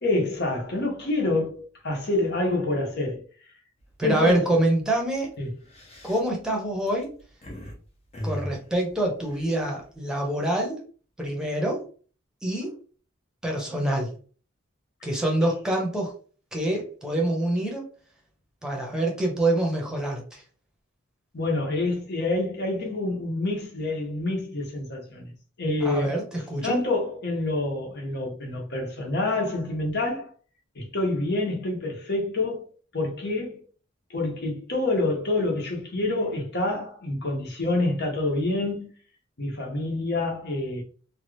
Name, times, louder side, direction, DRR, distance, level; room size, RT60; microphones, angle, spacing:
voice 1, 0.0-3.2 4.0-4.4 5.4-5.5 21.3-25.3 25.6-26.2 26.6-30.3 30.7-32.7 32.9-33.6 34.1-38.9 39.4-40.8, left 2 dB, 55° left, 1.0 m, -27 dB
sound 1, 3.8-4.1 4.5-4.7 5.4-7.7 8.1-9.9, equal, 30° left, 0.8 m, -38 dB
voice 2, 4.0-5.3 6.0-7.1 8.2-10.8 11.2-11.8 12.4-12.7 13.4-14.1 15.0-16.1 16.5-17.9 18.6-20.4 25.8-26.8, right 1 dB, 5° right, 0.9 m, -26 dB
2.9 x 2.4 x 3.2 m
head